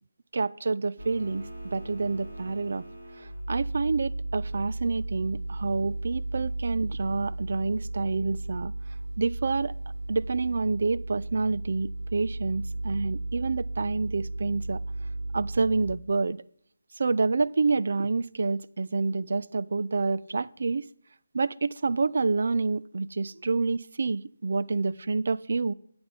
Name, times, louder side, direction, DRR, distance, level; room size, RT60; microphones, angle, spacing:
voice 1, 0.3-1.4 1.7-2.8 3.2-8.7 9.2-9.7 10.1-14.8 15.3-16.4 17.0-20.8 21.3-25.7, right 4 dB, 55° right, 0.4 m, -28 dB
sound 1, 1.0-15.9, right 2 dB, 80° right, 4.1 m, -35 dB
9.9 x 8.8 x 5.1 m
hypercardioid pair, 175°, 0 cm